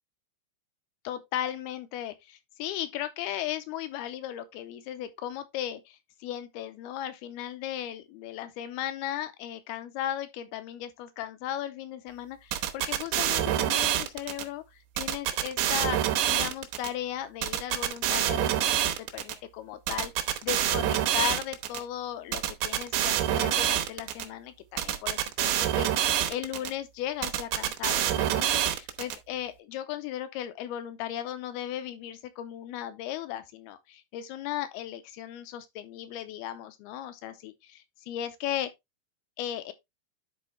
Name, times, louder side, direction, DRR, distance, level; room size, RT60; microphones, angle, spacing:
voice 1, 1.0-14.6 15.0-16.0 16.3-38.7 39.4-39.7, left 11 dB, 80° left, 2.4 m, -36 dB
sound 1, 12.5-14.4 15.0-16.9 17.4-19.3 19.9-21.8 22.3-24.3 24.8-26.7 27.2-29.2, right 11 dB, 80° right, 3.1 m, -26 dB
10.5 x 4.6 x 3.2 m
omnidirectional pair, 5.0 m